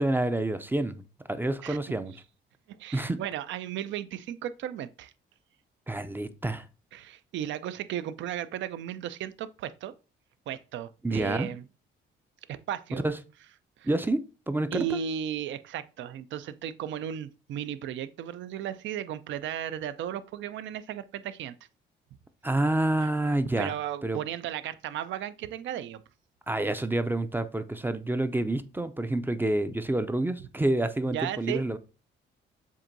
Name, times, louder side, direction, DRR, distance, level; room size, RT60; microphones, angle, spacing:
voice 1, 0.0-2.1 2.9-3.2 5.9-6.7 11.0-11.5 13.0-13.1 13.8-14.2 14.5-15.0 22.4-23.7 24.0-24.2 26.5-31.8, right 1 dB, 10° right, 0.4 m, -28 dB
voice 2, 2.7-5.1 6.9-9.9 10.5-11.6 12.5-13.0 13.8-13.9 14.7-21.5 23.0-23.1 23.6-26.0 31.0-31.6, right 10 dB, 70° right, 0.4 m, -35 dB
7.3 x 2.6 x 2.6 m
cardioid pair, 90°, 20 cm